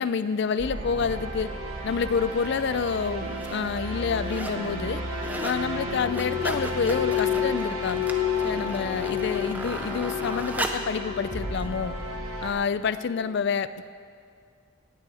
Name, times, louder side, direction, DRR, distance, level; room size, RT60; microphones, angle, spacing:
voice 1, 0.0-1.5 1.8-5.0 5.4-8.0 8.4-12.0 12.4-13.9, left 6 dB, 55° left, 15 dB, 0.3 m, -28 dB
sound 1, 0.6-12.5, right 1 dB, 70° right, 1.5 m, -34 dB
sound 2, 2.3-2.5 3.1-3.6 3.9-4.6 4.9-5.6 5.9-10.9 11.6-11.7, right 1 dB, 10° right, 0.5 m, -36 dB
Glass, 5.8-10.4 10.7-11.4 11.8-12.3 12.9-13.2, left 14 dB, 30° right, 3.0 m, -31 dB
18.0 x 9.0 x 4.2 m, 2.3 s
head